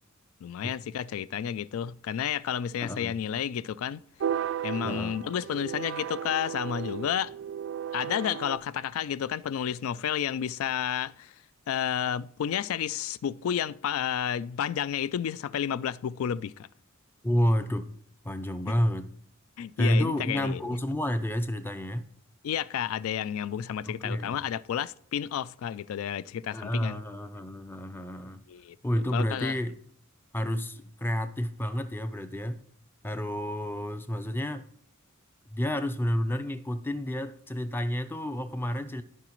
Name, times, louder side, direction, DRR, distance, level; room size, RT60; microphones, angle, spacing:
voice 1, 0.4-4.0 4.6-7.3 7.9-11.3 11.7-16.7 19.6-20.7 22.4-27.0 28.5-28.8 29.1-29.5, left 9 dB, 75° left, 0.3 m, -31 dB
voice 2, 2.8-3.1 4.8-5.1 17.2-17.9 18.2-19.1 19.8-22.1 23.9-24.4 26.5-28.4 28.8-29.8 30.3-32.6 33.0-34.6 35.5-39.0, equal, 10° left, 0.5 m, -30 dB
sound 1, 4.2-8.6, right 9 dB, 60° right, 0.3 m, -34 dB
14.5 x 5.0 x 3.0 m
head